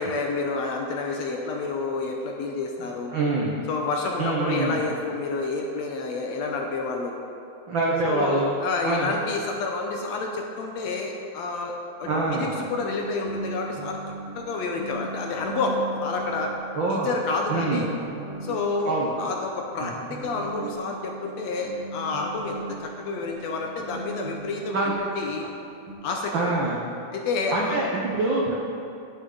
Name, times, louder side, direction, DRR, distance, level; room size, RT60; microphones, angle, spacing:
voice 1, 0.0-3.2 3.7-7.2 8.1-11.7 12.0-14.0 14.4-16.5 16.9-17.9 18.4-25.5 26.0-26.3 27.1-27.8, left 3 dB, 70° left, 1 dB, 1.8 m, -29 dB
voice 2, 3.1-3.6 4.2-4.8 7.7-8.5 8.8-9.1 12.1-12.5 16.7-17.1 17.5-17.9 18.8-19.1 19.8-20.0 24.7-24.9 26.3-26.8 27.5-28.5, right 3 dB, 85° right, -3 dB, 1.0 m, -25 dB
Moroccan Guimbri Lute, 12.0-26.0, right 3 dB, 55° right, 1.6 m, -39 dB
15.0 x 6.7 x 3.9 m, 2.7 s
omnidirectional pair, 3.6 m